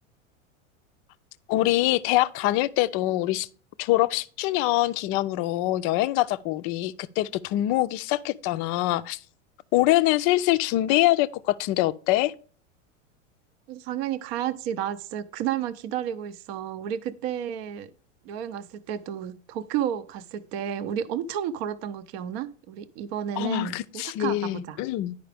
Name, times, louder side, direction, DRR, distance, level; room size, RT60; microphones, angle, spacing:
voice 1, 1.5-3.5 3.8-9.2 9.7-12.3 23.4-25.2, left 16 dB, 40° left, 0.4 m, -24 dB
voice 2, 13.7-17.9 18.2-24.8, right 10 dB, 55° right, 0.6 m, -32 dB
10.0 x 5.0 x 3.4 m
hypercardioid pair, 110°, 37 cm